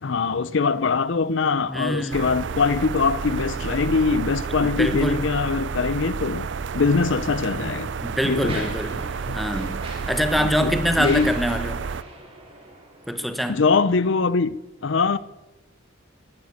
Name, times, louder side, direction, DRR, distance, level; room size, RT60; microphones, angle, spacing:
voice 1, 0.0-6.5 6.7-7.9 8.2-8.7 10.3-11.3 13.5-14.5 14.8-15.2, left 4 dB, 60° left, 0.5 m, -22 dB
voice 2, 1.7-2.3 4.6-5.2 8.0-9.0 9.3-11.8 13.1-13.6, equal, ahead, 0.9 m, -25 dB
sound 1, 2.1-12.0, right 5 dB, 60° right, 0.4 m, -30 dB
Mechanisms, 6.9-7.0 7.7-13.5, right 2 dB, 25° right, 2.9 m, -42 dB
11.5 x 11.0 x 8.3 m
head